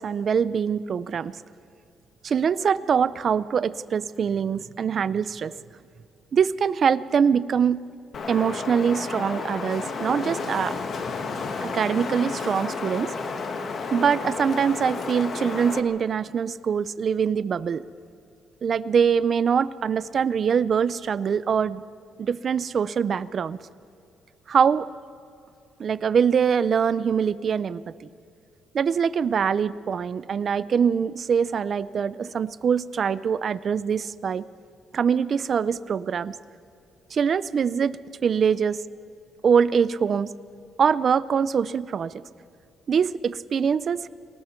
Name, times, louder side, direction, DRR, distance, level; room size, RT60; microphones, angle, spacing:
voice 1, 0.0-1.4 2.2-5.5 6.3-7.8 8.3-10.8 11.6-13.1 13.9-17.8 18.6-21.8 22.2-23.6 24.5-24.9 25.8-28.1 28.7-34.4 34.9-36.3 37.1-38.8 39.4-40.3 40.8-42.1 42.9-44.1, right 7 dB, 40° right, 17 dB, 0.5 m, -23 dB
Wind, 8.1-15.8, left 4 dB, 40° left, 1.4 m, -31 dB
29.5 x 19.5 x 4.5 m, 2.6 s
cardioid pair, 170°, 0 cm